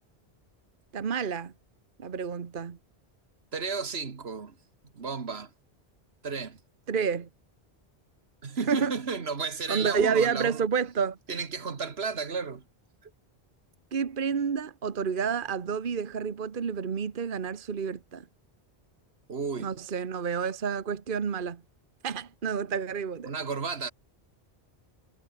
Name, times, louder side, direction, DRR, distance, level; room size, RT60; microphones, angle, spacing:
voice 1, 0.9-1.5 2.0-2.8 6.9-7.3 8.7-8.9 9.7-11.2 13.9-18.2 19.6-21.6 22.0-23.3, right 6 dB, 55° right, 1.3 m, -29 dB
voice 2, 3.5-4.6 4.9-5.5 6.2-6.6 8.4-10.7 11.3-12.6 13.0-13.1 19.3-19.8 23.2-23.9, right 5 dB, 75° right, 1.8 m, -33 dB
omnidirectional pair, 1.1 m